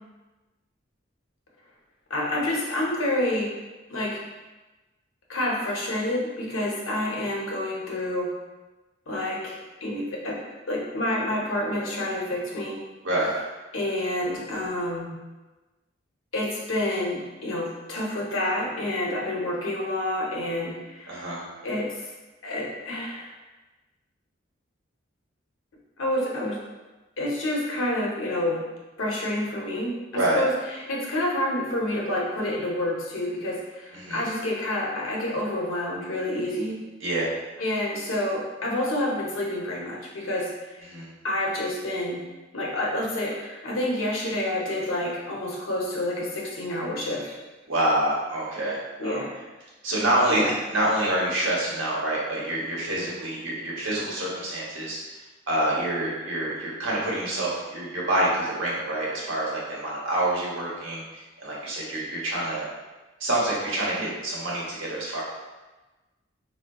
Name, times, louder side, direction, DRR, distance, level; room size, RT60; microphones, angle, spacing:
voice 1, 2.1-3.5 3.9-4.2 5.3-8.3 9.1-10.4 10.7-12.8 13.7-15.1 16.3-21.3 21.6-21.9 22.4-23.3 26.0-26.6 27.2-28.6 29.0-29.9 30.4-30.5 30.9-36.8 37.6-40.5 41.2-42.2 42.5-47.3 49.0-49.3 50.3-50.5, left 1 dB, 90° left, -3 dB, 0.7 m, -28 dB
voice 2, 13.0-13.3 21.1-21.4 30.1-30.4 33.9-34.2 37.0-37.3 40.8-41.1 47.6-49.2 49.8-55.0 55.5-62.7 63.2-65.2, right 1 dB, 85° right, -5 dB, 0.8 m, -27 dB
3.5 x 2.1 x 2.2 m, 1.2 s
head